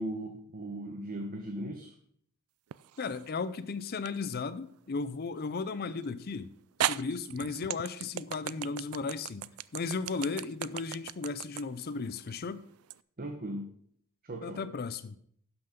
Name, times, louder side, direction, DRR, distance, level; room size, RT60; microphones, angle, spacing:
voice 1, 0.0-1.9 13.2-13.7 14.2-14.6, right 1 dB, 40° right, 1.0 m, -38 dB
sound 1, 2.7-3.3 4.1-4.2 6.0-6.1 6.8-13.0, right 12 dB, 75° right, 0.3 m, -36 dB
voice 2, 3.0-6.5 6.8-9.5 9.7-12.6 14.4-15.2, left 4 dB, 45° left, 0.5 m, -35 dB
11.0 x 5.9 x 5.1 m
head